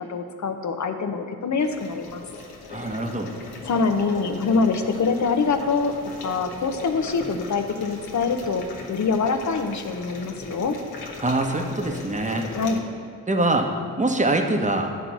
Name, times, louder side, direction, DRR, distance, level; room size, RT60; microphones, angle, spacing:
voice 1, 0.0-2.2 3.6-5.9 6.2-8.6 8.9-10.8 12.5-12.8, left 4 dB, 45° left, 7 dB, 0.9 m, -24 dB
sound 1, 1.6-12.8, left 3 dB, 60° left, 1.2 m, -39 dB
voice 2, 2.7-3.3 11.2-12.5 13.3-13.7 14.0-14.9, right 2 dB, 20° right, 4 dB, 1.1 m, -23 dB
10.0 x 4.0 x 5.9 m, 2.2 s
hypercardioid pair, 45°, 41 cm